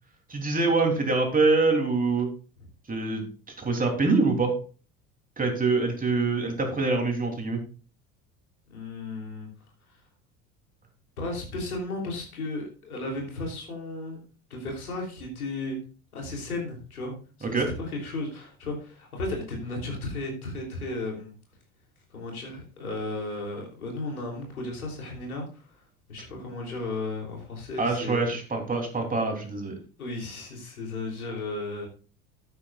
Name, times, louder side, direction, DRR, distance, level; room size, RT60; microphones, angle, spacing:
voice 1, 0.3-2.3 2.9-3.2 3.6-4.5 5.4-7.6 17.5-17.7 27.8-29.8, right 3 dB, 20° right, 2 dB, 3.3 m, -25 dB
voice 2, 8.7-9.5 11.2-14.2 14.5-15.8 16.1-17.1 17.4-21.3 22.1-25.8 26.1-28.4 30.0-31.9, left 2 dB, 90° left, 0 dB, 3.3 m, -34 dB
13.0 x 9.1 x 2.4 m, 0.38 s
hypercardioid pair, 75°, 43 cm